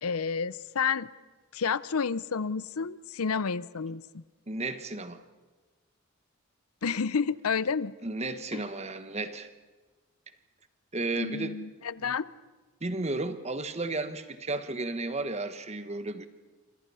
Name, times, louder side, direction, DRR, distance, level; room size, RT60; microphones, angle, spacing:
voice 1, 0.0-1.1 1.5-4.2 6.8-7.9 8.5-8.6 11.2-12.3, left 5 dB, 85° left, 18 dB, 0.7 m, -30 dB
voice 2, 4.5-5.2 8.0-9.5 10.9-11.6 12.0-12.1 12.8-16.3, right 2 dB, 30° right, 10 dB, 1.2 m, -33 dB
27.5 x 26.0 x 5.7 m, 1.3 s
head